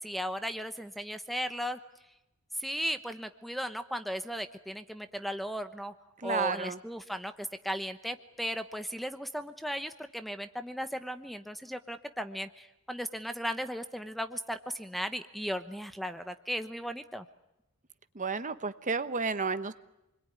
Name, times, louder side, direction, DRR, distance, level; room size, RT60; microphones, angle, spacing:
voice 1, 0.0-1.8 2.6-5.9 6.2-17.2, equal, ahead, 10 dB, 0.9 m, -36 dB
voice 2, 6.2-6.8 18.1-19.7, right 4 dB, 35° right, 12 dB, 1.1 m, -31 dB
28.0 x 22.0 x 9.7 m, 0.92 s
head